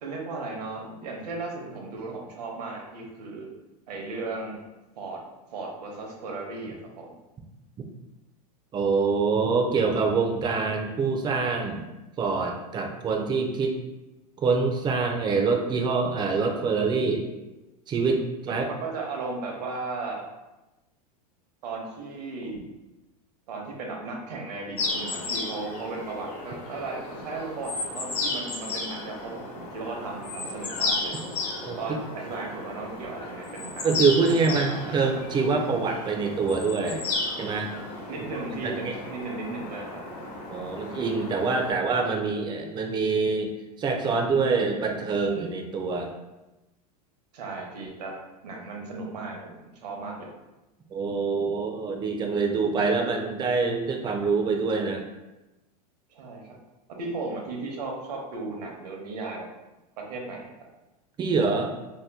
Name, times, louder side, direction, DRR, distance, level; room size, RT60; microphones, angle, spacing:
voice 1, 0.0-3.5 3.9-4.6 5.0-5.2 5.5-7.1 18.5-20.2 21.6-22.6 23.5-31.1 31.6-33.9 34.3-34.5 38.1-40.0 47.3-48.1 48.4-50.3 56.1-56.5 57.0-59.5 60.1-60.5, right 3 dB, 80° right, 0 dB, 0.8 m, -36 dB
voice 2, 8.7-11.8 12.2-13.8 14.4-17.2 17.9-18.7 31.6-32.0 33.8-37.1 37.4-37.7 38.6-38.9 40.5-43.5 43.8-46.1 50.9-55.0 61.2-61.7, right 4 dB, 20° right, 3 dB, 0.4 m, -25 dB
sound 1, 24.8-41.7, left 3 dB, 50° left, 1.0 m, -34 dB
2.8 x 2.2 x 3.4 m, 1.0 s
hypercardioid pair, 120°, 20 cm